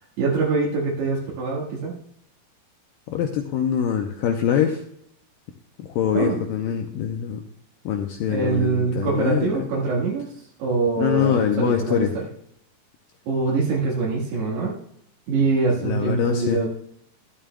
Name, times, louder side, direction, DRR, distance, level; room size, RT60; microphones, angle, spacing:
voice 1, 0.2-1.9 6.1-6.4 8.3-10.3 10.6-12.3 13.3-14.7 15.3-16.7, right 4 dB, 80° right, -4 dB, 3.7 m, -24 dB
voice 2, 3.1-4.8 5.8-7.4 7.9-9.7 11.0-12.1 15.8-16.6, left 8 dB, 85° left, 4 dB, 1.9 m, -24 dB
12.5 x 12.5 x 2.3 m, 0.70 s
omnidirectional pair, 4.7 m